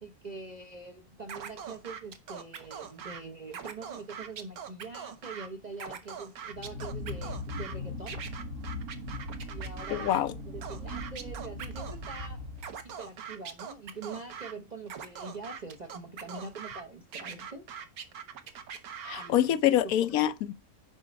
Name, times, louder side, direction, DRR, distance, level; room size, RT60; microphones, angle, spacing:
voice 1, 0.0-8.2 9.5-12.4 12.8-17.7 19.2-19.6 20.1-20.2, right 3 dB, 40° right, 0.6 m, -44 dB
Scratching (performance technique), 1.3-3.2 3.5-5.5 5.7-7.7 8.1-10.2 10.6-12.3 12.6-14.5 14.9-16.8 17.1-19.3, right 7 dB, 75° right, 1.5 m, -42 dB
sound 1, 6.5-13.0, left 1 dB, 55° right, 1.7 m, -39 dB
voice 2, 9.9-10.4 19.0-20.5, left 12 dB, 75° left, 1.0 m, -26 dB
6.5 x 4.9 x 5.1 m
omnidirectional pair, 1.6 m